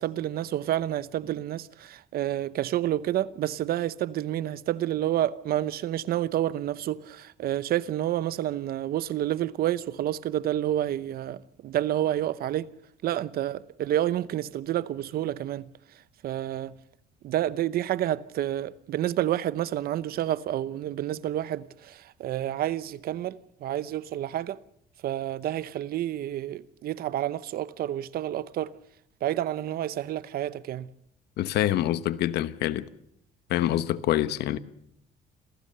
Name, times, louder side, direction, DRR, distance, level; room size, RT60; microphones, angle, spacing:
voice 1, 0.0-12.7 13.0-15.7 16.2-16.7 17.2-24.6 25.0-28.7 29.2-30.9, right 12 dB, 65° right, 0.9 m, -29 dB
voice 2, 31.4-32.9 33.5-34.6, left 13 dB, 75° left, 1.1 m, -26 dB
27.0 x 16.0 x 6.7 m
cardioid pair, 110°, 17 cm